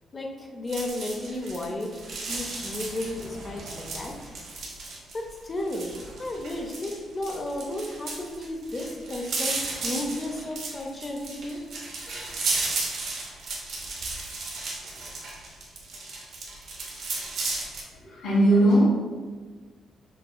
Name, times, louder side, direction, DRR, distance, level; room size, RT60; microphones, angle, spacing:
voice 1, 0.1-2.0 2.3-4.1 5.1-5.9 6.2-11.6 12.1-12.3 15.9-16.0, left 1 dB, 30° left, 1 dB, 0.5 m, -33 dB
sound 1, 0.7-17.8, right 3 dB, 75° right, 1.1 m, -34 dB
voice 2, 17.9-18.9, right 1 dB, 75° left, -10 dB, 1.4 m, -19 dB
6.3 x 2.3 x 2.2 m, 1.4 s
cardioid pair, 90°, 0 cm